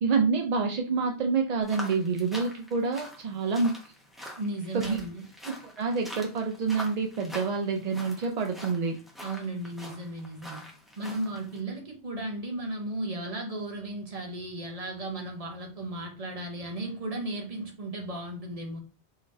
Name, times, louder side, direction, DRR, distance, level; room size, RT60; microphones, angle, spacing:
voice 1, 0.0-3.7 4.7-5.0 5.4-9.0, right 4 dB, 55° right, 0.5 m, -27 dB
sound 1, 1.6-11.6, equal, ahead, 0.7 m, -45 dB
voice 2, 4.4-5.3 9.2-10.6 11.0-18.8, right 2 dB, 35° right, 0.9 m, -35 dB
3.8 x 3.2 x 2.6 m
omnidirectional pair, 1.1 m